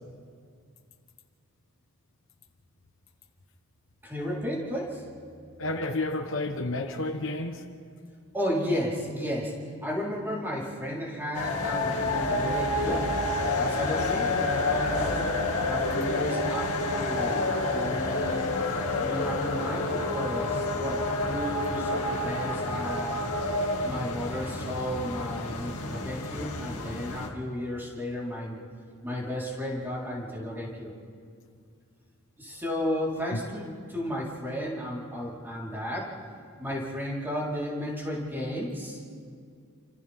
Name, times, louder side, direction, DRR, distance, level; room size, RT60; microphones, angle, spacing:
voice 1, 4.0-5.0 8.3-13.1 13.6-15.2 15.6-18.5 19.0-23.2 23.8-28.6 29.0-30.9 32.4-36.1 36.6-39.0, equal, 10° right, -5 dB, 4.4 m, -33 dB
voice 2, 5.6-7.6, left 2 dB, 60° left, 4 dB, 1.2 m, -30 dB
sound 1, 11.3-27.3, left 2 dB, 90° left, 2.3 m, -29 dB
29.5 x 25.5 x 3.7 m, 2.2 s
head